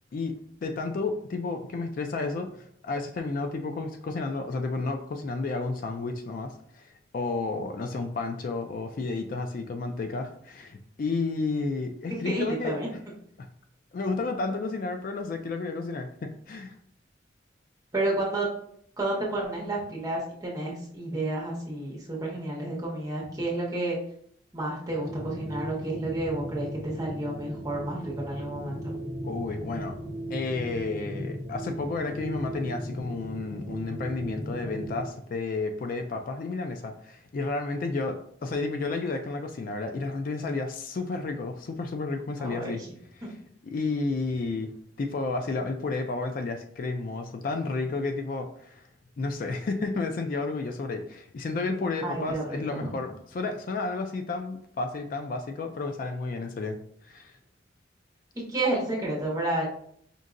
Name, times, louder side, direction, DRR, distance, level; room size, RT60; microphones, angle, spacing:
voice 1, 0.6-13.0 13.4-13.5 13.9-16.8 29.2-29.9 30.3-42.8 43.2-43.3 43.6-44.7 45.0-48.9 49.2-56.8 57.0-57.4, left 3 dB, 50° left, 6 dB, 0.3 m, -31 dB
voice 2, 12.1-12.9 17.9-18.5 19.0-24.0 24.5-29.0 42.4-42.8 43.2-43.3 52.0-52.9 58.5-59.7, right 2 dB, 20° right, -4 dB, 1.1 m, -31 dB
sound 1, 24.9-35.1, equal, 20° left, 1.3 m, -37 dB
5.1 x 2.7 x 2.5 m, 0.67 s
head